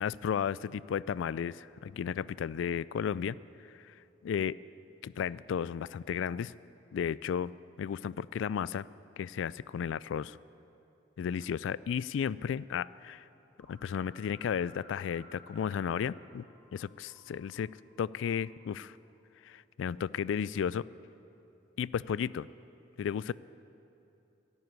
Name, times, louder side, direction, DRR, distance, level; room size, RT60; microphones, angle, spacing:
voice 1, 0.0-3.4 3.7-3.9 4.2-4.6 5.0-6.5 6.9-7.5 7.8-8.9 9.2-10.4 11.2-13.3 13.7-16.4 16.7-17.7 18.0-19.0 19.4-20.8 21.8-22.5 23.0-23.3, left 7 dB, 80° left, 19 dB, 0.3 m, -33 dB
sound 1, 13.6-16.2 16.5-18.8, right 1 dB, ahead, 3.1 m, -57 dB
12.5 x 11.0 x 9.4 m, 2.9 s
head